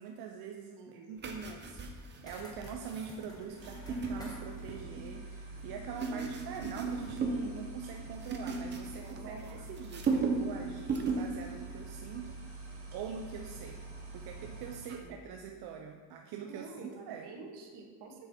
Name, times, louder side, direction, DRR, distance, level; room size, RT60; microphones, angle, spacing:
voice 1, 0.0-13.8 14.1-17.3, right 6 dB, 65° right, 3 dB, 0.6 m, -44 dB
voice 2, 0.8-1.1 6.0-6.3 6.6-6.7 9.0-9.7 14.9-15.2 16.4-18.3, right 4 dB, 85° right, 1 dB, 1.6 m, -48 dB
sound 1, 1.2-5.1 5.6-7.5 7.8-9.5 9.8-10.5 10.8-11.3 11.7-11.9, right 4 dB, 25° right, 0.7 m, -36 dB
sound 2, 1.8-6.0, equal, 10° left, 1.2 m, -55 dB
sound 3, 3.5-15.1, right 2 dB, 45° right, 2.5 m, -46 dB
7.9 x 6.5 x 4.2 m, 1.6 s
cardioid pair, 175°, 40 cm